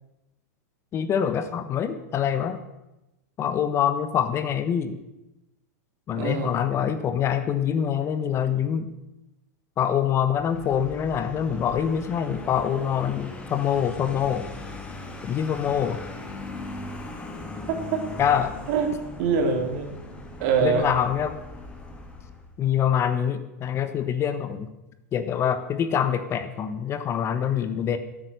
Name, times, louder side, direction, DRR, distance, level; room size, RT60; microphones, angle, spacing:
voice 1, 0.9-2.6 3.4-5.0 6.1-8.9 9.8-14.4 15.2-16.0 18.2-18.5 20.6-21.4 22.6-24.7 25.1-28.0, left 8 dB, 30° left, 10 dB, 1.1 m, -25 dB
voice 2, 6.1-6.5 17.7-18.0 18.7-18.9 19.2-19.9 20.4-20.9, right 6 dB, 55° right, 4 dB, 2.9 m, -24 dB
Vehicle, 10.3-22.6, left 2 dB, 15° left, 2.3 m, -39 dB
12.5 x 8.9 x 6.8 m, 0.97 s
hypercardioid pair, 110°, 9 cm